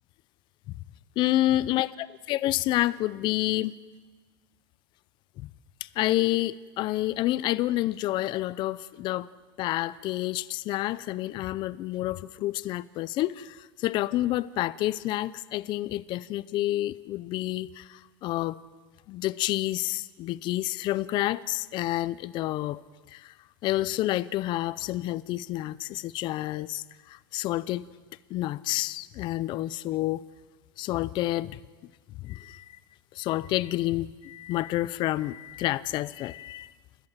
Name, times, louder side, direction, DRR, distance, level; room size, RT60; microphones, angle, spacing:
voice 1, 1.2-1.9 2.3-3.7 5.8-9.3 9.6-18.6 19.1-22.8 23.1-23.3 23.6-27.9 28.3-30.2 30.8-31.6 32.2-32.8 33.1-36.7, left 16 dB, 40° left, 18 dB, 0.6 m, -29 dB
29.5 x 14.0 x 7.5 m, 1.4 s
supercardioid pair, 135°, 12 cm